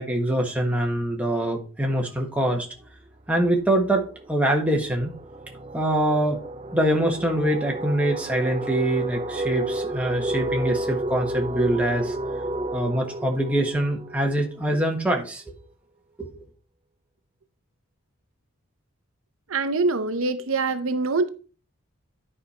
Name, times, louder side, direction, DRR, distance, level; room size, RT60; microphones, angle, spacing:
voice 1, 0.0-2.7 3.3-5.1 5.7-6.4 6.7-12.2 12.7-15.5 16.2-16.3, right 1 dB, 5° right, 1.4 m, -24 dB
sound 1, 2.8-3.1 3.4-14.9, right 1 dB, 25° right, 0.5 m, -32 dB
voice 2, 19.5-21.3, right 3 dB, 70° right, 0.7 m, -24 dB
10.0 x 5.0 x 4.2 m
head